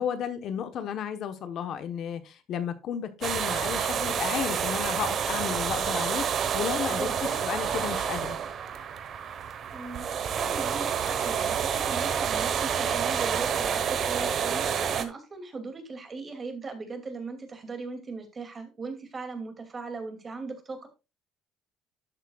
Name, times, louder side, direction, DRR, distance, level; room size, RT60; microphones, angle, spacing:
voice 1, 0.0-8.4, left 8 dB, 55° left, 1.1 m, -33 dB
sound 1, 3.2-15.1, right 7 dB, 45° right, 1.1 m, -29 dB
voice 2, 7.0-7.4 9.7-10.1 10.4-20.9, right 4 dB, 25° right, 2.5 m, -38 dB
12.0 x 8.1 x 2.4 m
cardioid pair, 135°, 0 cm